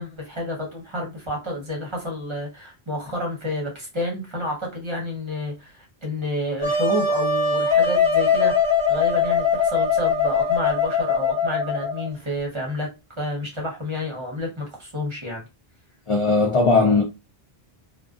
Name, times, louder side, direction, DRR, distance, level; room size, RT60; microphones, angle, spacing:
voice 1, 0.0-12.9 13.2-15.4, left 1 dB, 30° right, 0.8 m, -30 dB
Wind instrument woodwind instrument, 6.6-12.1, left 5 dB, 15° left, 1.1 m, -21 dB
voice 2, 16.1-17.0, left 3 dB, 55° left, 0.3 m, -18 dB
2.4 x 2.2 x 2.3 m
omnidirectional pair, 1.0 m